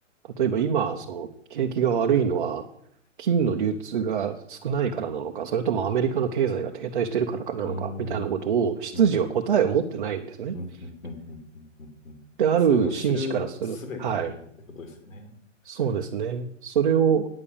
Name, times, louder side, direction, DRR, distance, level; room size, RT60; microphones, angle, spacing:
voice 1, 0.4-2.6 3.2-10.5 12.4-14.3 15.6-17.3, right 7 dB, 40° right, 3 dB, 0.8 m, -25 dB
voice 2, 7.6-8.3 8.9-9.3 10.5-12.2 12.7-14.4 14.7-15.3, left 3 dB, 85° left, 6 dB, 2.7 m, -37 dB
9.7 x 6.9 x 7.1 m, 0.69 s
hypercardioid pair, 170°, 38 cm